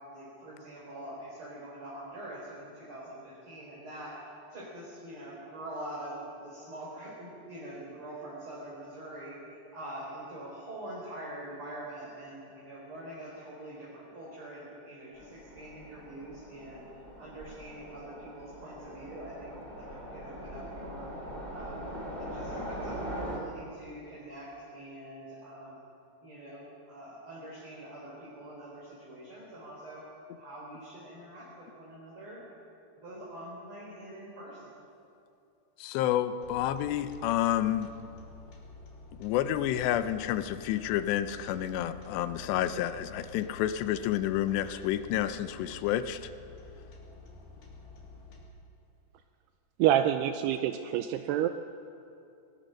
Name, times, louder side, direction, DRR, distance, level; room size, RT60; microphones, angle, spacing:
voice 1, 0.1-4.1 4.5-16.8 17.2-21.1 21.5-21.9 22.2-25.8 26.2-30.0 30.4-32.4 33.0-34.7, right 1 dB, 30° right, -5 dB, 4.5 m, -44 dB
Train, 15.2-23.4, equal, 15° left, 2.2 m, -41 dB
voice 2, 35.8-38.0 39.2-46.2, left 12 dB, 80° left, 12 dB, 2.9 m, -29 dB
sound 1, 36.4-48.4, left 3 dB, 55° left, 4.8 m, -50 dB
voice 3, 49.8-51.5, right 11 dB, 80° right, 8 dB, 2.5 m, -26 dB
21.5 x 20.5 x 6.4 m, 2.6 s
omnidirectional pair, 5.1 m